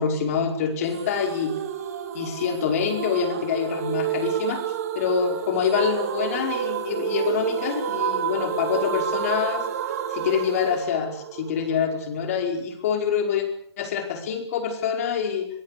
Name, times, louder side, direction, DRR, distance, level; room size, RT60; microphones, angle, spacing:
voice 1, 0.0-1.6 2.1-4.6 5.0-9.6 10.1-13.5 13.8-15.5, left 7 dB, 35° left, 4 dB, 5.0 m, -26 dB
sound 1, 0.9-11.9, right 9 dB, 35° right, 2.5 m, -29 dB
24.0 x 23.0 x 6.9 m, 0.67 s
hypercardioid pair, 160°, 14 cm